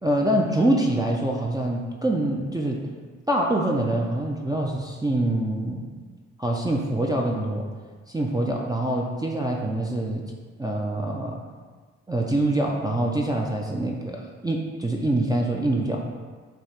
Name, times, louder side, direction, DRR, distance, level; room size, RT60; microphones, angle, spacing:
voice 1, 0.0-2.8 3.3-5.9 6.4-7.6 8.1-10.2 10.6-11.4 12.1-16.1, right 1 dB, 10° right, -2 dB, 0.4 m, -25 dB
3.4 x 2.4 x 4.2 m, 1.5 s
supercardioid pair, 50°, 32 cm